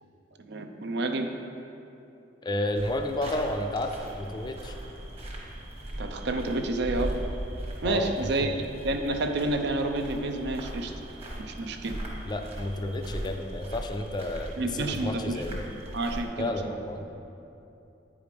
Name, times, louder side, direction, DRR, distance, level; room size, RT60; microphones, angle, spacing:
voice 1, 0.4-1.3 6.0-7.2 7.8-8.6 8.8-10.9 11.4-12.0 14.6-15.6 15.9-16.5, right 2 dB, 60° right, 6 dB, 0.6 m, -29 dB
voice 2, 2.4-4.8 7.8-8.1 8.4-8.6 12.2-15.6 16.4-17.0, left 1 dB, 25° left, 5 dB, 0.4 m, -31 dB
sound 1, 2.7-16.2, right 1 dB, 35° right, 1.3 m, -39 dB
9.1 x 4.9 x 5.1 m, 2.8 s
head